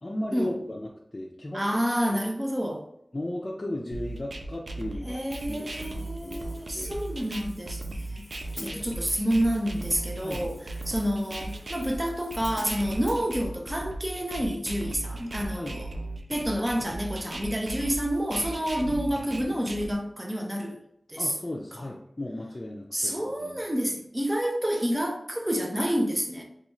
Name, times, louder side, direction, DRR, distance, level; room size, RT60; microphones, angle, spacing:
voice 1, 0.0-1.7 2.1-2.2 3.1-5.2 5.5-6.4 6.7-7.0 8.5-9.0 10.2-10.5 15.5-15.8 21.2-23.6, left 1 dB, 40° left, 0.5 m, -36 dB
voice 2, 1.5-2.9 5.0-8.2 8.6-15.9 16.3-20.8 21.1-21.3 22.9-26.4, equal, 20° right, 0.7 m, -29 dB
sound 1, 3.9-19.9, right 2 dB, 75° right, 0.4 m, -37 dB
Hi-hat, 5.3-13.2, left 1 dB, 10° left, 1.0 m, -49 dB
4.0 x 2.4 x 3.0 m
wide cardioid pair, 75°, 0 cm